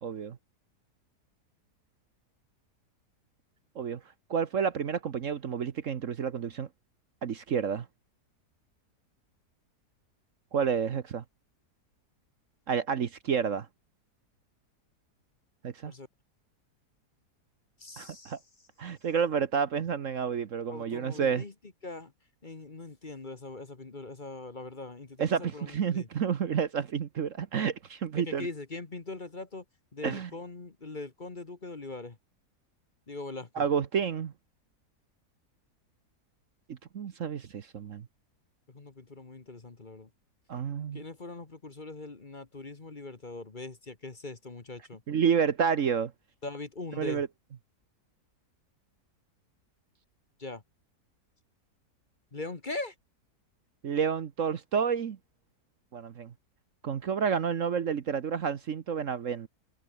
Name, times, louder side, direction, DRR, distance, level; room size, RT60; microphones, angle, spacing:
voice 1, 0.0-0.4 3.7-4.0 4.3-6.7 7.2-7.9 10.5-11.2 12.7-13.7 15.6-15.9 18.0-18.4 18.8-21.4 25.2-28.5 30.0-30.3 33.5-34.3 36.7-38.1 40.5-41.0 45.1-46.1 47.0-47.3 53.8-55.2 55.9-56.3 56.8-59.5, right 7 dB, 55° right, 1.3 m, -30 dB
voice 2, 17.8-18.3 20.7-21.5 21.8-22.1 22.4-26.1 28.2-29.6 29.9-32.2 33.1-33.6 38.7-40.1 40.9-45.0 46.4-47.2 50.4-50.6 52.3-52.9, left 3 dB, 30° left, 1.6 m, -41 dB
omnidirectional pair, 1.7 m